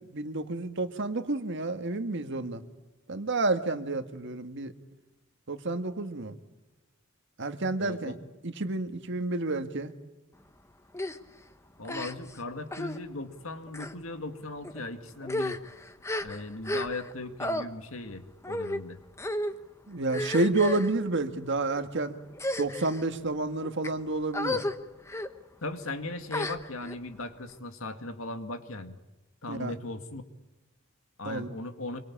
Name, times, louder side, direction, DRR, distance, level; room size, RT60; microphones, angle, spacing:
voice 1, 0.1-2.6 3.1-4.7 5.5-6.3 7.4-8.1 8.4-9.9 19.9-22.2 22.6-24.6 29.5-29.7 31.2-31.5, right 2 dB, 60° right, 8 dB, 1.7 m, -30 dB
voice 2, 7.8-8.1 11.8-15.6 16.2-19.0 25.6-29.0 29.4-30.2 31.2-32.0, left 2 dB, 80° left, 7 dB, 2.1 m, -38 dB
sound 1, 10.9-11.2 11.8-12.4 12.7-13.0 13.7-13.9 14.6-14.8 15.2-17.1 17.4-17.6 18.4-18.8 19.2-19.5 20.1-20.9 21.6-21.8 22.3-23.0 23.6-23.9 24.3-24.7 25.1-25.3 26.3-27.0, left 1 dB, 15° left, 1.1 m, -33 dB
25.5 x 23.5 x 8.7 m, 1.1 s
head